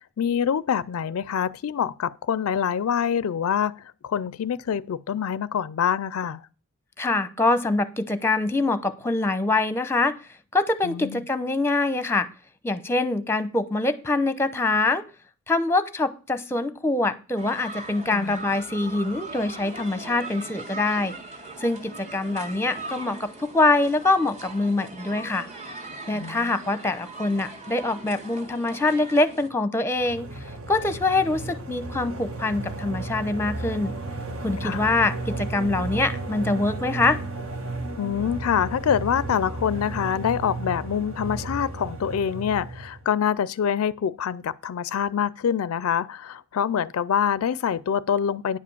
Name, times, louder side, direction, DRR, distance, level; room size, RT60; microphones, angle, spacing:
voice 1, 0.2-6.4 10.8-11.2 18.1-18.4 26.1-26.6 34.6-34.8 38.0-48.6, left 8 dB, 70° left, 0.4 m, -25 dB
voice 2, 7.0-10.2 10.5-12.3 12.6-15.0 15.5-21.1 21.6-25.5 26.1-30.3 30.7-33.9 34.4-37.2, left 2 dB, 10° left, 0.7 m, -24 dB
sound 1, 17.4-29.5, right 2 dB, 35° right, 1.9 m, -40 dB
Creature Voice Mantra, 29.9-43.0, right 2 dB, 65° right, 1.4 m, -34 dB
10.0 x 5.0 x 7.0 m
head